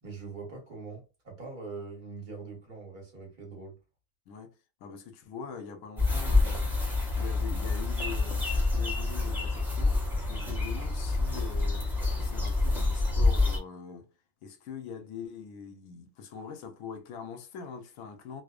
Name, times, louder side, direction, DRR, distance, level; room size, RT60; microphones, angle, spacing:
voice 1, 0.0-3.8, right 4 dB, 40° right, 1.2 m, -42 dB
voice 2, 4.8-6.7 7.2-10.0 10.3-11.9 12.2-14.1 14.4-18.4, left 6 dB, 90° left, 1.0 m, -43 dB
sound 1, 6.0-13.6, left 2 dB, ahead, 0.7 m, -27 dB
2.6 x 2.0 x 2.3 m
omnidirectional pair, 1.4 m